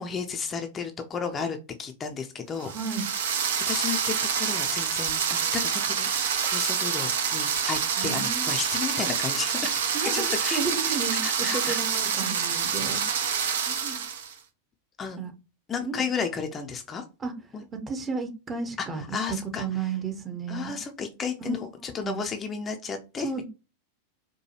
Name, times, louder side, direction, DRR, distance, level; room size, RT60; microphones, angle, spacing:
voice 1, 0.0-2.7 3.7-9.8 10.1-11.0 11.2-11.8 15.0-15.2 15.7-17.0 17.5-17.6 18.8-18.9 19.1-19.7 20.5-23.4, left 6 dB, 20° left, 0.5 m, -33 dB
voice 2, 2.6-3.1 8.0-8.5 9.9-14.1 15.2-15.3 15.8-16.0 17.2-17.3 17.7-20.7 21.4-21.5 22.0-22.3 23.2-23.4, right 4 dB, 20° right, 0.8 m, -33 dB
sound 1, 2.6-14.3, right 7 dB, 60° right, 0.6 m, -27 dB
4.7 x 2.2 x 2.9 m
figure-of-eight pair, 90°, 0 cm